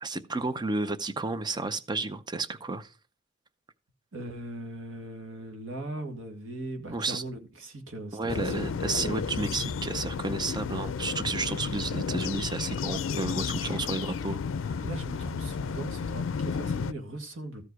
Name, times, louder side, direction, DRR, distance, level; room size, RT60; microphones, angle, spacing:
voice 1, 0.0-2.9 6.9-7.2 8.1-14.4 14.6-14.8, right 3 dB, 20° right, 0.6 m, -32 dB
voice 2, 4.1-9.2 13.6-13.8 14.8-17.6, right 1 dB, 80° right, 1.8 m, -39 dB
sound 1, 8.3-16.9, left 6 dB, 80° left, 0.4 m, -32 dB
14.0 x 4.8 x 4.6 m
head